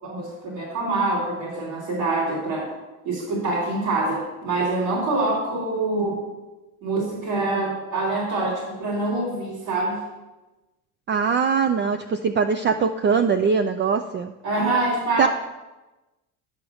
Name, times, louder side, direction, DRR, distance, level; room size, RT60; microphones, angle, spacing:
voice 1, 0.0-2.7 3.0-6.2 6.8-10.0 14.4-15.3, right 2 dB, 80° right, -7 dB, 3.8 m, -25 dB
voice 2, 11.1-14.3 15.2-15.3, right 5 dB, 25° right, 7 dB, 0.4 m, -21 dB
11.0 x 4.8 x 6.1 m, 1.1 s
supercardioid pair, 85°, 42 cm